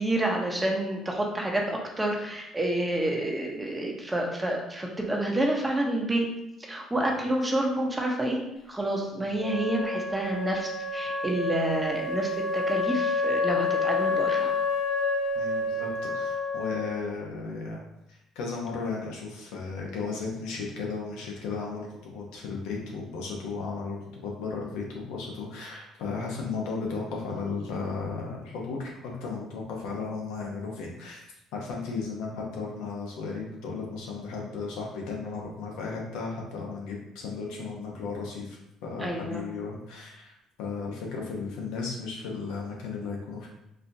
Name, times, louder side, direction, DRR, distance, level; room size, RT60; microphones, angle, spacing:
voice 1, 0.0-6.3 6.6-14.5 39.0-39.5, right 1 dB, 15° right, 0 dB, 0.8 m, -29 dB
Wind instrument woodwind instrument, 9.4-17.1, left 3 dB, 45° left, 0.6 m, -29 dB
voice 2, 15.3-17.8 18.1-43.5, left 4 dB, 85° left, -1 dB, 0.9 m, -35 dB
4.2 x 2.7 x 2.7 m, 0.85 s
supercardioid pair, 85°, 0 cm